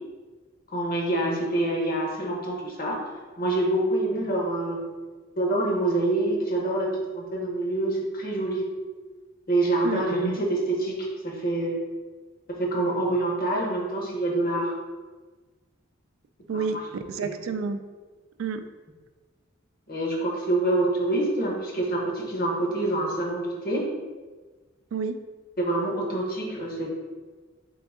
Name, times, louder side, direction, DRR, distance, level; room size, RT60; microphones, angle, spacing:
voice 1, 0.7-3.0 3.4-4.8 5.4-6.9 7.1-8.6 9.5-11.7 12.6-14.7 16.5-16.6 17.2-17.3 19.9-23.9 25.6-26.9, right 2 dB, 50° left, -1 dB, 1.0 m, -26 dB
voice 2, 16.5-17.8 18.4-18.6 24.9-25.2, right 5 dB, 80° right, 9 dB, 0.3 m, -30 dB
3.8 x 3.5 x 3.6 m, 1.3 s
head